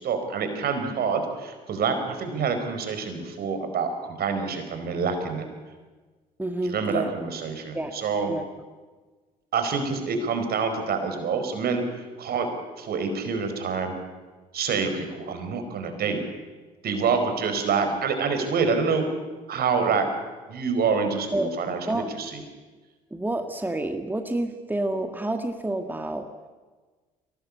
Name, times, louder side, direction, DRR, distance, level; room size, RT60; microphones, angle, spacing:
voice 1, 0.0-5.4 6.6-8.3 9.5-11.8 12.2-12.5 12.8-13.9 14.5-16.2 16.8-19.0 19.5-20.1 20.5-22.4, right 5 dB, 60° right, 7 dB, 4.6 m, -26 dB
voice 2, 6.4-7.1 7.7-8.5 21.3-21.5 21.9-22.1 23.1-26.3, right 1 dB, 10° right, 6 dB, 1.9 m, -29 dB
23.0 x 19.0 x 8.5 m, 1.3 s
hypercardioid pair, 55°, 18 cm